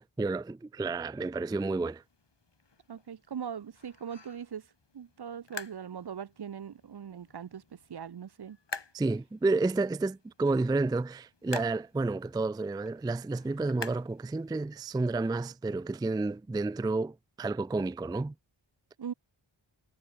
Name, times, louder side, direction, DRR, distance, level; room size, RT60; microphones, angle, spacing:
voice 1, 0.0-2.0 8.9-18.3, right 3 dB, 10° right, 0.3 m, -30 dB
sound 1, 1.6-14.9, left 4 dB, 60° left, 3.3 m, -48 dB
voice 2, 2.9-8.6 19.0-19.1, right 8 dB, 55° right, 0.7 m, -41 dB
wide cardioid pair, 65°, 47 cm